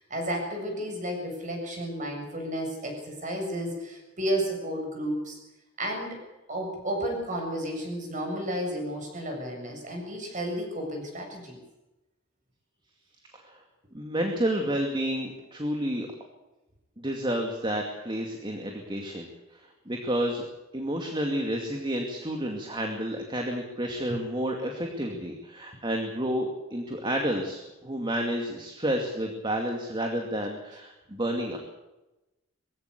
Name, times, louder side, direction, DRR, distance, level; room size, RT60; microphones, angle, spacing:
voice 1, 0.0-5.4 5.8-6.2 6.5-11.6, equal, 40° right, 2 dB, 7.4 m, -32 dB
voice 2, 13.9-16.1 17.0-20.5 20.7-31.6, equal, 25° right, 2 dB, 2.4 m, -30 dB
22.0 x 16.0 x 8.4 m, 1.0 s
head